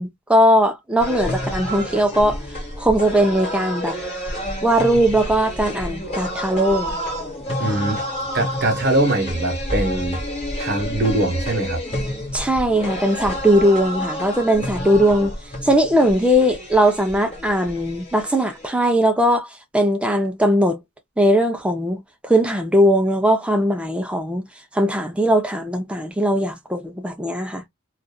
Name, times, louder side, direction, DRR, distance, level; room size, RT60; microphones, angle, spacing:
voice 1, 0.0-2.4 2.8-4.0 4.6-7.0 12.3-15.3 15.6-20.8 21.2-24.5 24.7-27.6, equal, 5° right, 0.5 m, -19 dB
sound 1, 1.0-18.7, equal, 25° left, 1.3 m, -29 dB
voice 2, 7.6-8.0 8.3-10.2 10.6-11.8, right 1 dB, 45° right, 1.0 m, -22 dB
2.5 x 2.5 x 2.2 m
head